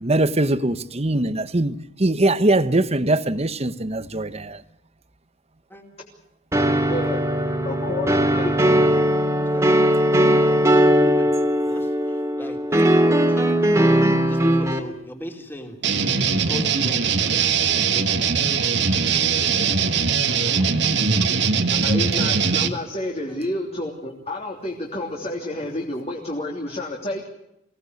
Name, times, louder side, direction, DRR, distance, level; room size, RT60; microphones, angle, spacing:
voice 1, 0.0-4.6, right 2 dB, 35° right, 1.1 m, -21 dB
sound 1, 6.5-14.8, equal, 15° right, 2.5 m, -19 dB
voice 2, 6.9-7.2 7.6-8.5 21.8-27.3, left 1 dB, 35° left, 3.2 m, -29 dB
voice 3, 10.2-11.4 11.6-15.8 16.3-18.9 19.2-19.9 20.3-21.3 23.3-23.4, equal, 10° left, 3.5 m, -39 dB
sound 2, 15.8-22.7, right 5 dB, 65° right, 1.9 m, -21 dB
25.0 x 17.5 x 8.2 m
head